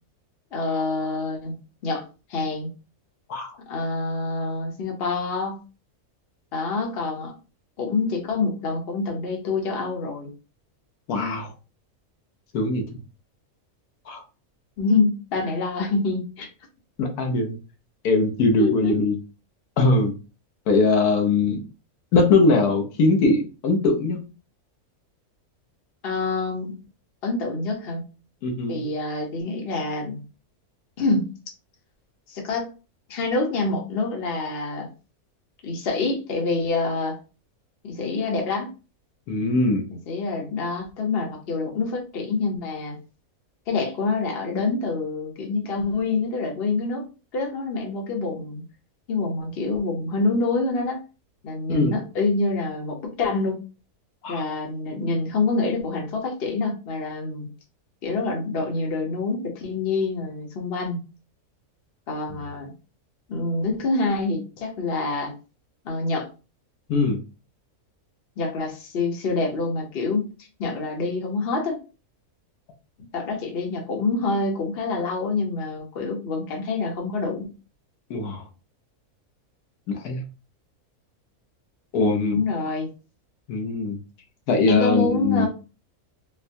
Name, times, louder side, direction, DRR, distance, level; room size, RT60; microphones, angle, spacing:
voice 1, 0.5-1.6 1.8-2.0 2.3-2.7 3.7-5.6 6.5-7.3 7.8-10.3 14.8-16.5 18.6-18.9 26.0-26.7 27.2-28.0 28.7-30.2 31.0-31.3 32.3-32.7 33.1-34.9 35.6-37.2 37.8-38.7 39.9-43.0 43.7-47.1 47.3-48.6 49.1-51.0 51.4-53.6 54.3-57.5 58.0-61.0 62.1-62.7 63.3-65.3 65.8-66.3 68.4-70.2 70.6-71.8 73.1-77.5 82.3-82.9 84.7-85.5, left 3 dB, 45° left, 1 dB, 1.0 m, -26 dB
voice 2, 11.1-11.5 12.5-12.8 14.1-14.2 17.0-17.6 18.0-19.2 19.8-20.1 20.7-21.6 22.1-24.2 28.4-28.8 39.3-39.9 51.7-52.0 54.2-54.4 62.3-62.4 66.9-67.2 78.1-78.4 79.9-80.2 81.9-82.4 83.5-84.0 84.5-85.5, left 3 dB, 80° left, 4 dB, 1.3 m, -21 dB
4.4 x 2.2 x 2.6 m, 0.32 s
omnidirectional pair, 1.6 m